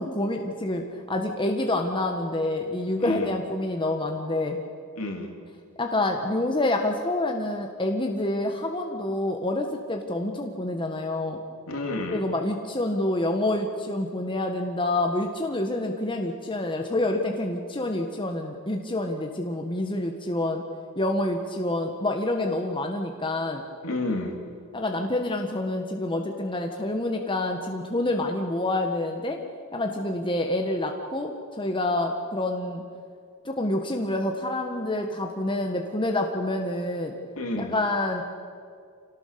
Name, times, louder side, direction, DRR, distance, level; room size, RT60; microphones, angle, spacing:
voice 1, 0.0-4.6 5.8-11.4 12.1-20.6 21.0-23.6 24.7-29.4 29.7-32.8 33.4-37.1 37.6-38.2, left 1 dB, 20° left, 3 dB, 1.4 m, -27 dB
voice 2, 3.0-3.3 5.0-5.3 11.7-12.2 23.8-24.3 37.3-37.7, left 2 dB, 65° left, 3 dB, 3.2 m, -30 dB
26.5 x 18.0 x 6.9 m, 2.2 s
head